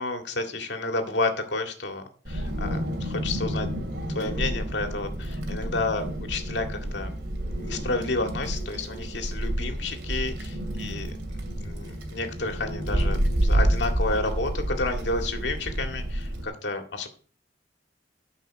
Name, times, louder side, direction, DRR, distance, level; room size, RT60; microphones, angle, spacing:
voice 1, 0.0-3.7 4.1-7.1 7.5-11.1 11.6-17.1, left 2 dB, 85° left, 4 dB, 2.1 m, -31 dB
Wind, 2.3-16.4, right 1 dB, 80° right, 2.6 m, -29 dB
12.5 x 5.7 x 6.2 m, 0.42 s
head